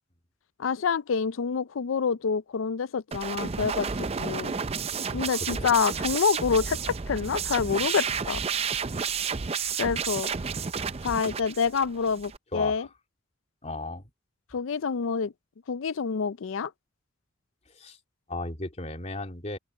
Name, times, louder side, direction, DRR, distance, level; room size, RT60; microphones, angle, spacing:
voice 1, 0.6-4.6 5.1-8.4 9.8-10.3 11.0-12.9 14.5-15.3 15.7-16.7, left 6 dB, 90° left, 0.5 m, -27 dB
sound 1, 3.1-12.4, right 6 dB, 30° right, 0.5 m, -31 dB
voice 2, 5.4-5.7 12.5-12.9 13.6-14.0 17.7-18.0 18.3-19.6, left 2 dB, 35° left, 3.2 m, -35 dB
open air
head